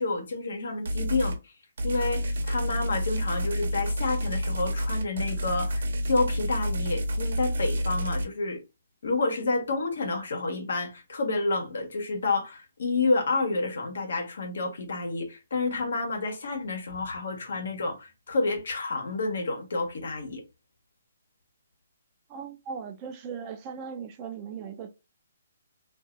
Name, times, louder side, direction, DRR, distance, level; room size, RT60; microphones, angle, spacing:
voice 1, 0.0-1.4 1.8-8.6 9.0-20.4, left 3 dB, 70° left, 1.1 m, -29 dB
sound 1, 0.9-1.4 1.8-8.2, equal, 75° right, 0.9 m, -29 dB
voice 2, 22.3-24.9, right 6 dB, 25° right, 0.5 m, -38 dB
2.8 x 2.6 x 2.5 m
hypercardioid pair, 160°, 0 cm